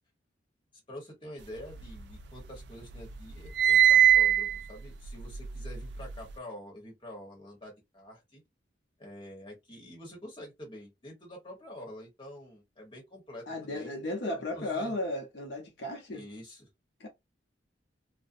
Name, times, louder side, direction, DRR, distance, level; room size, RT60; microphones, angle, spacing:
voice 1, 0.9-8.4 9.0-13.9 14.5-14.9 16.1-16.7, left 1 dB, 25° left, 1.0 m, -47 dB
sound 1, 1.5-2.6 2.9-6.3, right 10 dB, 65° right, 0.3 m, -24 dB
voice 2, 13.5-16.2 17.0-17.1, left 1 dB, 70° left, 0.7 m, -35 dB
2.5 x 2.1 x 2.5 m
head